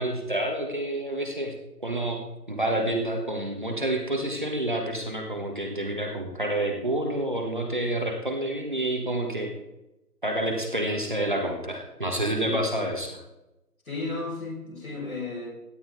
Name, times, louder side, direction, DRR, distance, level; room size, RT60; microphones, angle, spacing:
voice 1, 0.0-1.5 1.8-2.2 2.5-9.5 10.2-13.2, right 1 dB, 30° right, 2 dB, 1.4 m, -28 dB
voice 2, 13.9-15.5, left 3 dB, 55° left, -2 dB, 6.0 m, -34 dB
17.0 x 10.5 x 3.9 m, 0.96 s
figure-of-eight pair, 175°, 49 cm